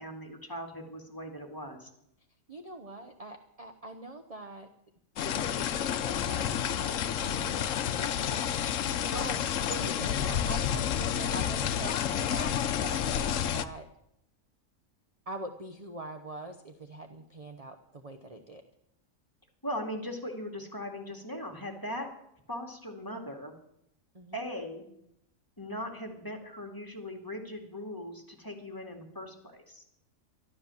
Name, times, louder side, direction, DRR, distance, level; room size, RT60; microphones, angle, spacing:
voice 1, 0.0-1.9 9.0-9.4 19.6-22.1 22.5-23.5 24.3-24.9 25.6-29.8, left 1 dB, 15° left, 2 dB, 2.3 m, -39 dB
voice 2, 2.5-4.7 5.2-8.8 9.1-9.4 9.7-13.9 15.3-18.6 24.1-24.4, right 1 dB, 30° right, 5 dB, 0.9 m, -43 dB
sound 1, 5.2-13.6, left 9 dB, 80° left, 1.1 m, -30 dB
13.0 x 12.0 x 7.1 m, 0.77 s
omnidirectional pair, 1.3 m